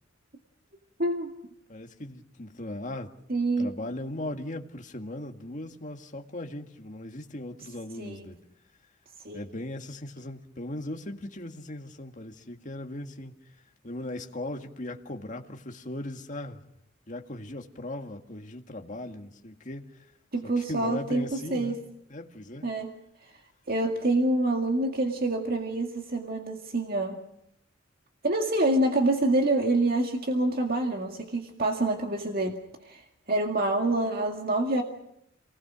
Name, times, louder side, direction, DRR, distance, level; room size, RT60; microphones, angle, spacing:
voice 1, 1.0-1.3 3.3-3.7 8.0-8.3 9.2-9.4 20.3-21.7 22.6-22.9 23.7-27.2 28.2-34.8, right 2 dB, 50° right, 2.0 m, -27 dB
voice 2, 1.7-3.1 3.6-8.4 9.3-16.6 17.1-20.1 20.4-21.8 22.1-22.7, left 1 dB, 40° left, 2.0 m, -38 dB
28.0 x 19.5 x 6.3 m
head